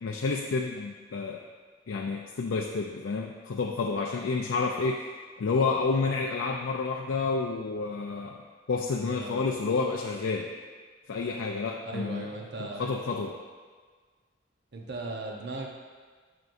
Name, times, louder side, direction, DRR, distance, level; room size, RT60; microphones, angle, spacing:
voice 1, 0.0-1.4 1.9-5.1 5.4-8.4 8.7-10.5 11.1-12.3 12.6-13.3, left 4 dB, 85° left, 1 dB, 0.4 m, -29 dB
voice 2, 9.0-9.6 11.9-13.0 14.7-15.7, right 2 dB, 60° right, 0 dB, 0.8 m, -37 dB
6.6 x 6.0 x 2.6 m, 1.5 s
head